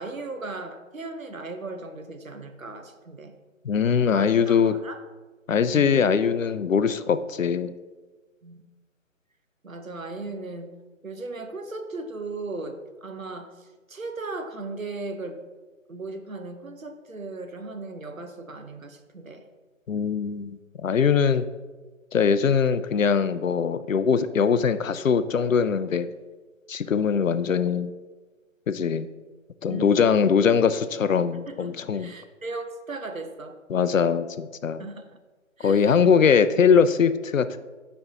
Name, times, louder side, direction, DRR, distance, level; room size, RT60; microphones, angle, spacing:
voice 1, 0.0-3.4 4.1-5.0 5.7-6.0 8.4-8.6 9.6-10.7 11.0-15.4 15.9-19.5 29.7-30.0 31.5-33.6 34.8-35.2 35.6-36.3, right 3 dB, 90° right, 7 dB, 0.9 m, -37 dB
voice 2, 3.6-4.7 5.5-7.7 19.9-21.5 22.1-26.1 26.7-27.9 28.7-29.1 29.6-32.1 33.7-34.9 35.6-37.6, left 6 dB, 75° left, 13 dB, 0.5 m, -22 dB
8.5 x 5.5 x 2.8 m, 1.3 s
figure-of-eight pair, 150°, 40 cm